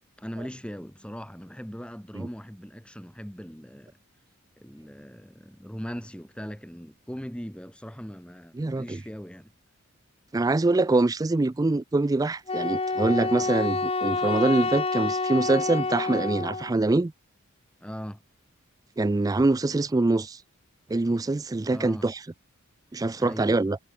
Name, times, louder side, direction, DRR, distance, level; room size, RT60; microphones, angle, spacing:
voice 1, 0.2-4.0 4.6-9.5 17.8-18.2 21.7-22.1 23.2-23.5, equal, 5° left, 3.3 m, -40 dB
voice 2, 8.6-9.0 10.3-17.1 19.0-20.4 20.9-22.2 22.9-23.8, right 2 dB, 15° right, 0.4 m, -24 dB
Wind instrument woodwind instrument, 12.5-16.7, left 3 dB, 25° left, 2.6 m, -28 dB
head